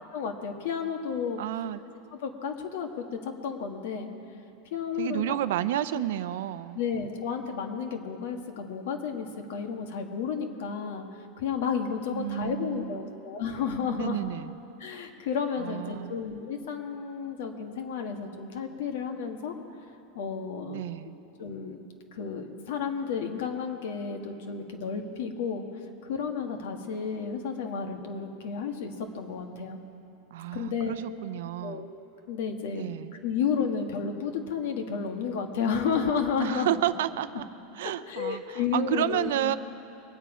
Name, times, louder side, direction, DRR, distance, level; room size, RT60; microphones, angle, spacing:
voice 1, 0.1-1.4 2.2-4.1 4.7-5.4 5.9-6.0 6.7-11.1 11.4-14.2 14.8-19.5 20.1-20.9 21.4-21.8 22.1-25.6 26.0-29.8 30.5-31.0 31.6-31.8 32.3-32.8 33.2-36.7 37.8-39.5, left 6 dB, 75° left, 4 dB, 1.6 m, -32 dB
voice 2, 1.4-1.8 5.0-6.8 12.1-13.2 13.9-14.6 15.6-16.2 20.7-21.2 30.3-31.9 32.7-33.2 36.4-37.5 37.7-39.6, right 13 dB, 75° right, 14 dB, 0.5 m, -31 dB
23.0 x 9.2 x 5.0 m, 2.8 s
supercardioid pair, 165°, 0 cm